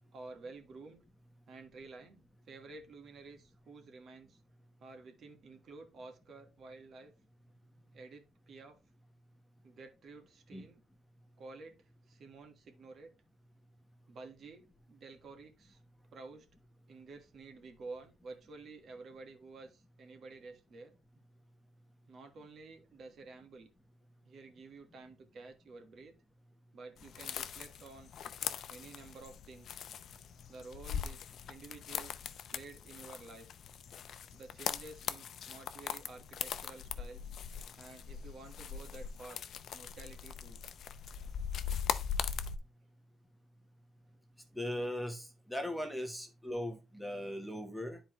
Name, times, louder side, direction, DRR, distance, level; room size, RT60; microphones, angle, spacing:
voice 1, 0.1-1.0 1.5-4.4 4.8-7.1 7.9-8.8 9.6-10.8 11.4-13.1 14.1-15.8 16.1-16.5 16.9-20.9 22.1-23.7 24.2-26.1 26.7-28.1 28.7-29.9 30.5-33.5 34.3-37.3 37.8-39.4 39.7-40.6, right 3 dB, 50° right, 5 dB, 1.6 m, -51 dB
sound 1, 27.0-42.6, left 8 dB, 55° left, 0.6 m, -41 dB
voice 2, 44.5-48.0, left 1 dB, ahead, 4 dB, 1.1 m, -39 dB
9.8 x 4.6 x 3.1 m, 0.27 s
cardioid pair, 115°, 0 cm